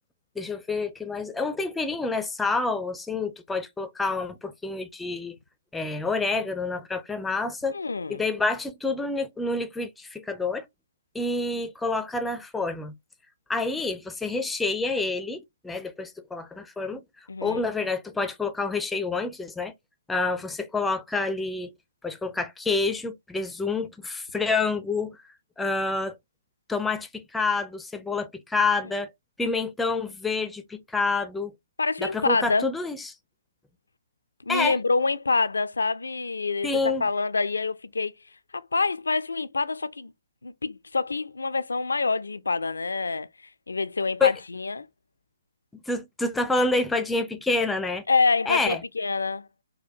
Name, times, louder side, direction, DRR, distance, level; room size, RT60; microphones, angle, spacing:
voice 1, 0.4-5.4 5.7-7.8 8.1-10.7 11.1-12.9 13.5-17.0 17.4-19.7 20.1-21.7 22.0-25.2 25.6-26.2 26.7-29.1 29.4-31.5 32.0-33.0 34.5-34.7 36.6-37.1 44.2-44.3 45.9-48.0 48.5-48.8, left 3 dB, 5° left, 0.4 m, -28 dB
voice 2, 7.7-8.2 17.3-17.6 31.8-32.7 34.5-38.1 38.5-40.1 40.4-43.3 43.7-44.9 48.1-49.5, left 4 dB, 75° left, 0.3 m, -26 dB
4.2 x 2.1 x 2.5 m
figure-of-eight pair, 125°, 0 cm